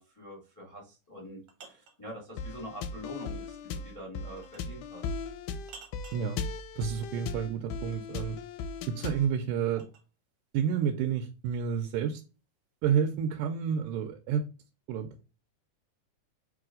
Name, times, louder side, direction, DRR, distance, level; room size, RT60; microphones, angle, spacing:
voice 1, 0.0-5.1, equal, 20° left, 0.4 m, -45 dB
sound 1, 1.0-2.0 4.4-4.8 5.7-6.3 8.6-10.1, right 5 dB, 70° right, 1.4 m, -52 dB
sound 2, 2.4-9.3, left 5 dB, 80° left, 1.9 m, -38 dB
voice 2, 6.8-8.4 8.9-9.9 10.5-12.2 12.8-14.4 14.9-15.2, right 8 dB, 90° right, 2.1 m, -30 dB
4.8 x 3.0 x 3.7 m
omnidirectional pair, 3.6 m